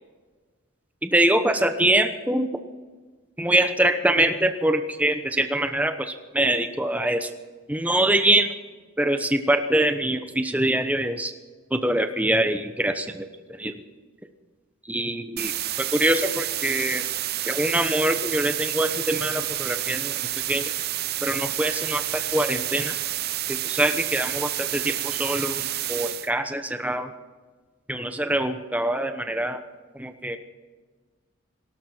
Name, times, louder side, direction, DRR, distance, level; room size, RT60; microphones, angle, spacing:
voice 1, 1.0-2.5 3.4-7.3 7.7-8.5 9.0-11.3 11.7-13.3 13.6-13.8 14.8-15.5 15.8-17.0 17.4-20.2 20.5-20.6 21.2-23.0 23.5-27.1 27.9-29.6 29.9-30.4, right 1 dB, 5° right, 8 dB, 0.9 m, -24 dB
sound 1, 15.4-26.3, right 14 dB, 45° right, 0.6 m, -29 dB
19.0 x 17.0 x 4.5 m, 1.4 s
head